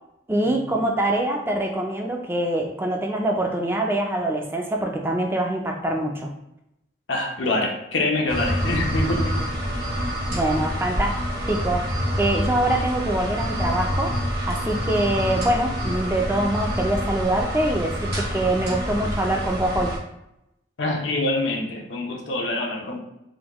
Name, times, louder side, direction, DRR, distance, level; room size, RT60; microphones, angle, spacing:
voice 1, 0.3-6.3 10.3-11.1 11.4-14.2 14.5-20.0, right 1 dB, 10° right, 1 dB, 0.3 m, -24 dB
voice 2, 7.1-9.4 20.8-23.0, left 2 dB, 85° left, 1 dB, 0.7 m, -25 dB
sound 1, 8.3-20.0, equal, 55° right, 0.9 m, -27 dB
3.8 x 2.2 x 2.9 m, 0.84 s
head